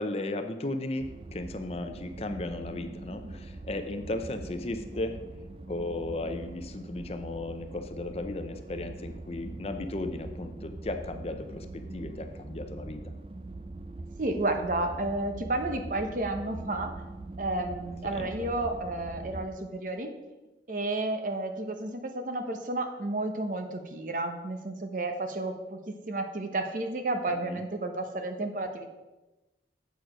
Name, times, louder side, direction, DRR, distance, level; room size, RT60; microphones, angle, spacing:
voice 1, 0.0-5.2 5.7-13.1 18.1-18.3 27.3-27.6, left 2 dB, 35° left, 7 dB, 0.6 m, -35 dB
sound 1, 1.0-19.5, right 2 dB, 30° right, 0.4 m, -42 dB
voice 2, 14.2-16.9 17.4-20.1 20.7-28.9, right 2 dB, 45° right, 6 dB, 0.9 m, -32 dB
7.9 x 6.7 x 5.0 m, 1.1 s
head